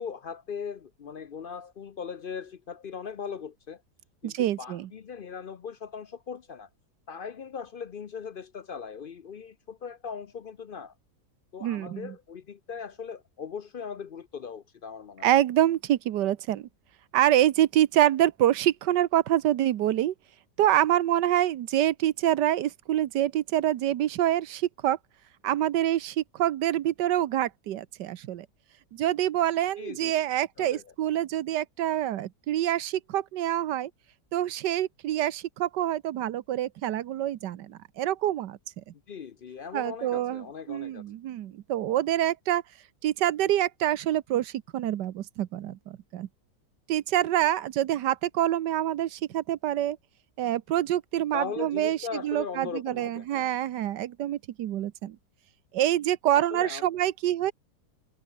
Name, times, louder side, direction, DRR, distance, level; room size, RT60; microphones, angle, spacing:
voice 1, 0.0-3.8 4.2-6.7 7.1-10.9 11.5-15.3 29.8-30.1 30.6-30.9 39.1-41.0 51.3-53.5 56.3-56.9, left 6 dB, 60° left, 0.5 m, -39 dB
voice 2, 4.2-4.9 11.6-12.1 15.2-16.7 17.1-20.1 20.6-25.0 25.4-28.5 28.9-33.9 34.3-38.6 39.7-42.6 43.0-46.3 46.9-50.0 50.4-52.0 52.2-55.2 55.7-57.5, right 12 dB, 85° right, 1.5 m, -26 dB
omnidirectional pair, 1.8 m